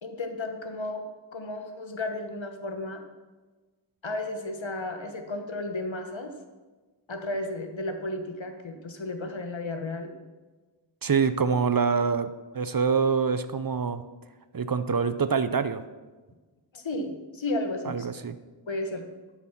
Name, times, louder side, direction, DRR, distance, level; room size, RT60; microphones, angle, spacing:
voice 1, 0.0-1.0 1.3-3.0 4.0-6.3 7.1-10.1 16.7-18.1 18.7-19.1, left 2 dB, 85° left, 5 dB, 1.3 m, -33 dB
voice 2, 11.0-14.0 14.5-15.8 17.8-18.4, right 5 dB, 50° right, 12 dB, 0.7 m, -25 dB
12.0 x 6.1 x 5.9 m, 1.3 s
wide cardioid pair, 40°, 45 cm